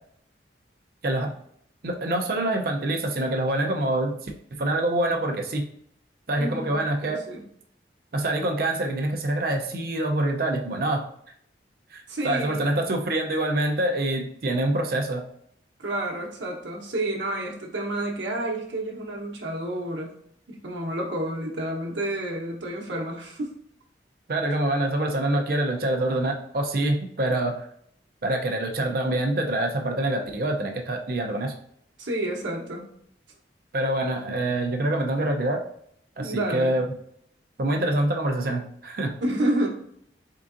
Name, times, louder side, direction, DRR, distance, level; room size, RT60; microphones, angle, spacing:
voice 1, 1.8-5.7 6.3-7.2 8.1-11.0 11.9-15.2 24.3-27.7 28.2-31.5 33.7-35.6 36.2-36.8 37.6-39.2, right 1 dB, 55° right, 3 dB, 0.5 m, -25 dB
voice 2, 6.4-7.4 12.1-12.7 15.8-20.1 20.5-23.5 32.0-32.9 36.2-36.7 39.2-39.7, right 1 dB, 90° right, -2 dB, 0.9 m, -30 dB
3.7 x 3.6 x 2.5 m, 0.68 s
head